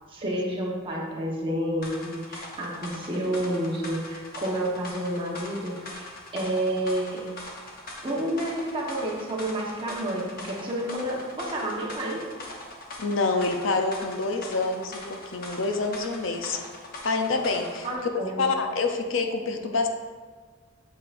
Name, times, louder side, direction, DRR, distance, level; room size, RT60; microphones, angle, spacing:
voice 1, 0.1-7.2 8.0-12.3 17.8-18.5, right 1 dB, 25° right, -3 dB, 1.2 m, -30 dB
sound 1, 1.8-17.9, left 2 dB, 45° left, 1.1 m, -41 dB
voice 2, 13.0-16.6 17.0-17.9 18.4-19.9, left 3 dB, 70° left, 5 dB, 0.6 m, -27 dB
8.5 x 6.7 x 2.6 m, 1.5 s
head